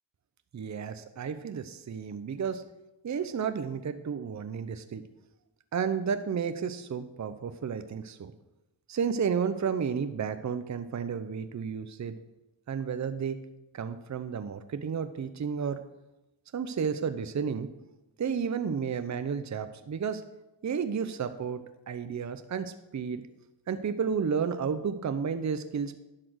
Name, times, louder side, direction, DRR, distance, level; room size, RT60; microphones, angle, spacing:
voice 1, 0.5-2.6 3.0-5.0 5.7-8.3 8.9-12.2 12.7-13.4 13.7-15.8 16.5-17.7 18.2-20.2 20.6-23.2 23.7-25.9, right 6 dB, 40° right, 10 dB, 0.8 m, -32 dB
11.0 x 5.8 x 6.4 m, 0.95 s
cardioid pair, 70°, 45 cm